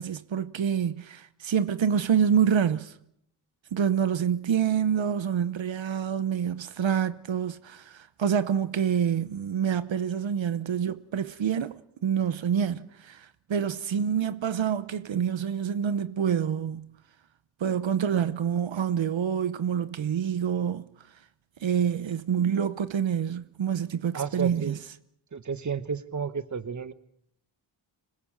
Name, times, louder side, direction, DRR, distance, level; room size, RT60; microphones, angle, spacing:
voice 1, 0.0-3.0 3.7-17.0 17.6-21.1 21.6-24.8, right 8 dB, 75° right, 0.9 m, -27 dB
voice 2, 24.1-24.8 25.3-26.9, right 6 dB, 40° right, 1.2 m, -32 dB
26.0 x 21.0 x 7.4 m
wide cardioid pair, 140°, 46 cm